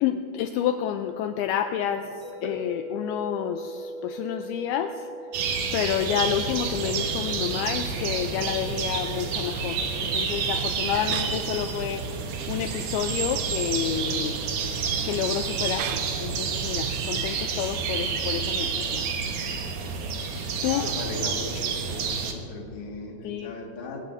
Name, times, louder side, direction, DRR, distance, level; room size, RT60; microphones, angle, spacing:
voice 1, 0.0-2.1 2.4-5.1 5.7-12.0 12.5-14.4 15.0-19.0 20.2-21.0 23.2-23.5, left 9 dB, 85° left, 7 dB, 2.3 m, -29 dB
sound 1, 2.2-12.3, right 1 dB, 20° right, 4.2 m, -42 dB
sound 2, 5.3-22.3, right 5 dB, 65° right, 2.0 m, -29 dB
sound 3, 6.2-17.3, right 7 dB, 90° right, 2.9 m, -38 dB
voice 2, 20.6-24.0, left 2 dB, 45° left, 0 dB, 2.1 m, -37 dB
28.0 x 16.0 x 2.6 m, 2.8 s
omnidirectional pair, 4.9 m